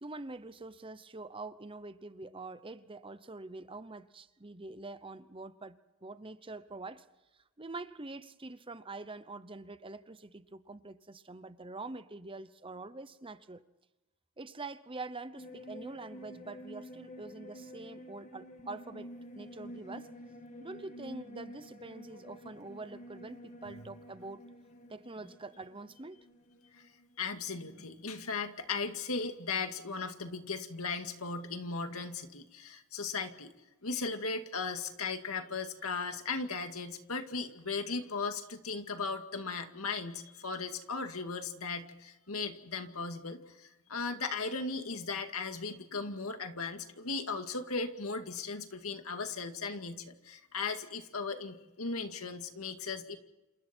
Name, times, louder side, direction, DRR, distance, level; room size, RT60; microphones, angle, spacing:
voice 1, 0.0-7.0 7.6-13.6 14.4-20.1 20.6-24.4 24.9-26.2, right 3 dB, 25° right, 0.9 m, -45 dB
sound 1, 15.4-27.3 27.6-27.7, equal, 35° left, 2.0 m, -50 dB
voice 2, 27.2-33.5 33.8-53.2, left 4 dB, 70° left, 2.2 m, -37 dB
28.0 x 28.0 x 4.5 m
head